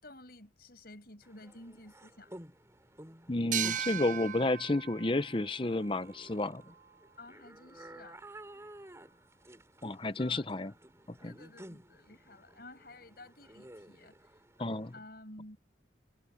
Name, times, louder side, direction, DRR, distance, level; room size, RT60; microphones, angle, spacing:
voice 1, 0.0-2.3 7.2-8.2 10.2-10.4 11.2-14.4 14.9-15.6, left 2 dB, 55° left, 6.9 m, -52 dB
sound 1, 1.2-14.9, right 1 dB, 15° right, 3.3 m, -54 dB
voice 2, 3.3-6.6 9.8-10.7 11.2-11.3 14.6-14.9, left 2 dB, 30° left, 0.8 m, -31 dB
sound 2, 3.5-6.9, right 10 dB, 45° right, 0.7 m, -38 dB
head